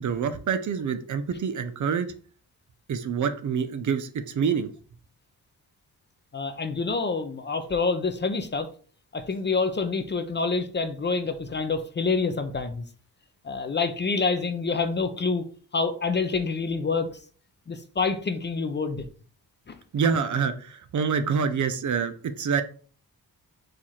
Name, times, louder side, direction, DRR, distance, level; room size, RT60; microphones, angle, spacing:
voice 1, 0.0-2.1 2.9-4.7 19.9-22.6, right 6 dB, 50° right, 0.5 m, -26 dB
voice 2, 6.3-8.7 9.1-12.9 13.4-15.5 15.7-17.2 17.7-19.0 19.7-19.8, left 4 dB, 30° left, 0.4 m, -27 dB
4.5 x 2.5 x 4.1 m
wide cardioid pair, 110°, 38 cm